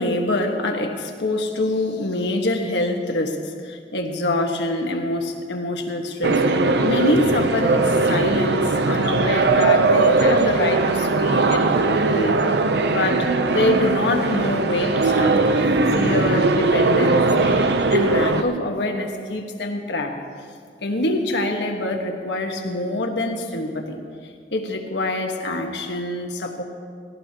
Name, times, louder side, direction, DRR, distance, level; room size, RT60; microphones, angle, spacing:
voice 1, 0.0-8.6 8.9-12.4 12.9-20.2 20.8-24.0 24.5-26.6, left 2 dB, 85° left, 3 dB, 1.4 m, -25 dB
sound 1, 6.2-18.4, right 3 dB, 75° right, 0.6 m, -19 dB
18.5 x 16.5 x 2.9 m, 2.1 s
head